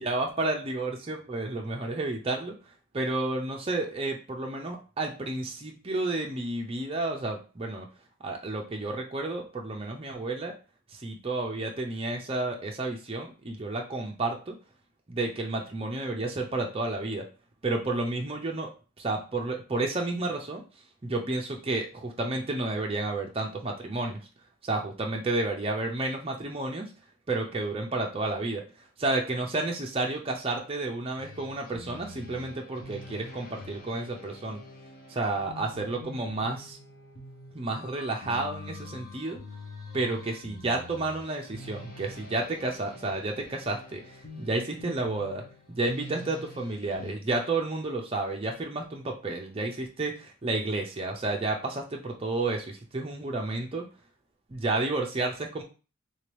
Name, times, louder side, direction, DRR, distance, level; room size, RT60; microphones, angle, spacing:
voice 1, 0.0-2.5 2.9-7.9 8.2-10.5 10.9-14.6 15.1-17.3 17.6-18.7 19.0-20.6 21.0-24.2 24.6-26.9 27.3-28.6 29.0-34.6 35.1-36.8 37.5-39.4 39.9-53.9 54.5-55.6, right 2 dB, 30° right, 1 dB, 0.6 m, -31 dB
sound 1, 31.2-47.1, left 2 dB, 45° left, 0.8 m, -46 dB
3.4 x 2.8 x 3.3 m, 0.34 s
head